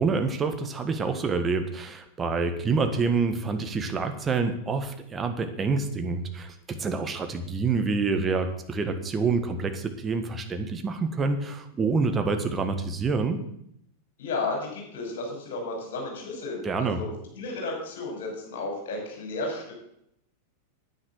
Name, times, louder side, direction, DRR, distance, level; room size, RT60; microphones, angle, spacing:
voice 1, 0.0-13.4 16.6-17.0, right 4 dB, 20° right, 7 dB, 1.6 m, -27 dB
voice 2, 14.2-19.7, left 3 dB, 55° left, 0 dB, 6.0 m, -33 dB
10.0 x 9.6 x 6.3 m, 0.74 s
figure-of-eight pair, 90°, 0 cm